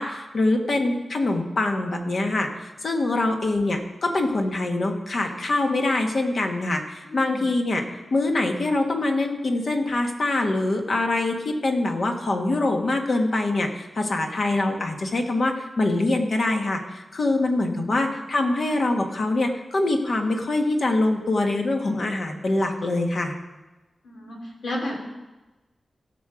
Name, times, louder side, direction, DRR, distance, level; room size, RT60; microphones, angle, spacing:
voice 1, 0.0-2.5 2.8-23.3, left 2 dB, 60° left, 3 dB, 1.5 m, -24 dB
voice 2, 7.0-7.4 17.6-18.0 24.0-25.0, left 1 dB, 85° left, -1 dB, 2.9 m, -33 dB
17.0 x 6.2 x 5.0 m, 1.1 s
wide cardioid pair, 100°, 0 cm